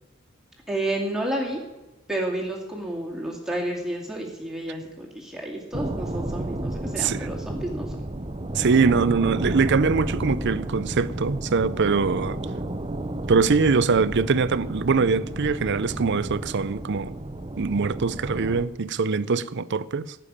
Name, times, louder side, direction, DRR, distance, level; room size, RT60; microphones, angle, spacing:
voice 1, 0.7-1.6 2.1-8.0, right 1 dB, 5° right, 2.4 m, -30 dB
sound 1, 5.7-18.6, right 1 dB, 25° right, 0.8 m, -32 dB
voice 2, 7.0-7.3 8.5-12.4 13.3-17.1 17.6-20.2, right 4 dB, 55° right, 0.6 m, -23 dB
15.5 x 6.9 x 9.9 m
head